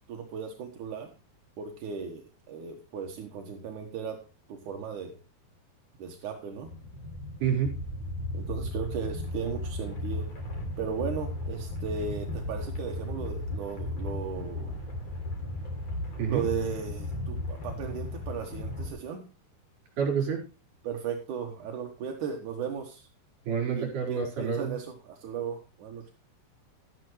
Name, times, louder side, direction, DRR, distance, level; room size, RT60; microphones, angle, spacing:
voice 1, 0.1-1.1 1.6-4.2 4.5-5.2 6.0-6.7 8.3-10.3 10.8-14.7 16.3-19.3 20.8-23.1 23.7-26.1, right 6 dB, 70° right, 2 dB, 2.0 m, -36 dB
sound 1, 6.6-18.9, left 1 dB, 40° left, 3.5 m, -35 dB
voice 2, 7.4-7.7 16.2-16.4 20.0-20.4 23.5-24.8, right 7 dB, 45° right, 1 dB, 6.0 m, -28 dB
12.5 x 10.5 x 3.1 m, 0.32 s
omnidirectional pair, 5.1 m